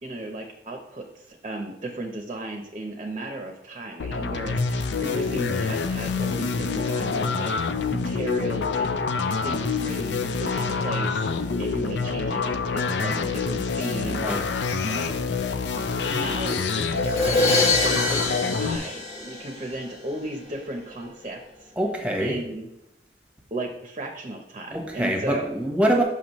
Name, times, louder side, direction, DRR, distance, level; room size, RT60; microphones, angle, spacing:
voice 1, 0.0-7.6 7.9-9.0 9.4-14.5 14.9-15.1 16.1-21.7 22.2-22.7 23.5-25.4, right 1 dB, 35° right, 2 dB, 0.7 m, -35 dB
sound 1, 4.0-18.8, left 4 dB, 70° left, 0.5 m, -26 dB
voice 2, 14.1-14.4 21.8-22.3 24.7-26.0, right 1 dB, 5° right, 1 dB, 1.0 m, -24 dB
Crash cymbal, 17.0-19.9, left 3 dB, 40° left, 1.0 m, -24 dB
6.9 x 5.8 x 3.0 m, 0.85 s
head